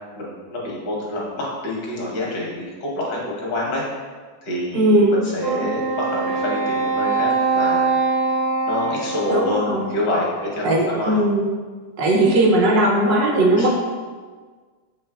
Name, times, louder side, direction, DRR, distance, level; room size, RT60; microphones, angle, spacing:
voice 1, 0.2-3.8 4.4-7.9 8.7-11.2 13.6-13.7, left 1 dB, 75° left, -4 dB, 1.7 m, -27 dB
voice 2, 4.7-5.1 5.4-5.7 9.3-9.9 10.6-11.5 12.0-13.7, right 1 dB, 70° right, -1 dB, 1.1 m, -18 dB
Wind instrument woodwind instrument, 5.4-10.0, right 4 dB, 50° right, 0.8 m, -23 dB
6.9 x 3.1 x 2.3 m, 1.5 s
omnidirectional pair, 1.9 m